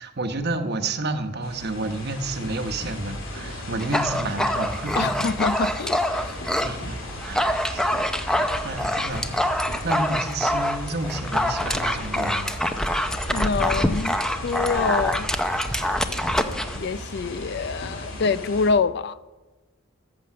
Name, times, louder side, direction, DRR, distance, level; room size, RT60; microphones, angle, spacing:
voice 1, 0.0-5.3 5.6-5.8 6.2-7.0 7.2-7.8 8.6-12.5, right 2 dB, 50° right, 1.0 m, -30 dB
sound 1, 1.4-18.7, left 1 dB, 70° left, 2.7 m, -36 dB
Dog, 3.8-6.7 7.1-16.8, equal, 5° left, 0.6 m, -25 dB
voice 2, 5.0-6.0 13.3-15.3 16.7-19.2, left 5 dB, 55° left, 0.4 m, -25 dB
14.0 x 6.9 x 7.6 m
head